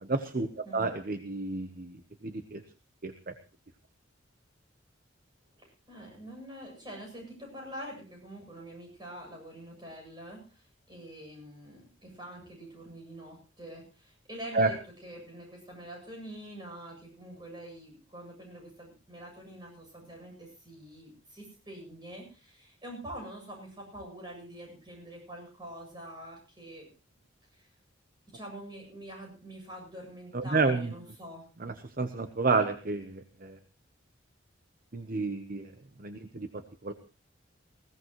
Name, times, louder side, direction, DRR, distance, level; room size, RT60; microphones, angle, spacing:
voice 1, 0.0-0.5 0.7-2.0 2.2-2.6 3.0-3.3 14.5-14.7 30.3-30.9 31.6-33.6 34.9-35.7 36.0-36.9, right 3 dB, 45° right, 9 dB, 0.9 m, -30 dB
voice 2, 0.6-1.0 5.6-14.8 15.0-26.9 27.5-27.7 28.3-31.5, right 1 dB, 25° right, 0 dB, 8.0 m, -45 dB
20.5 x 16.5 x 3.1 m, 0.33 s
head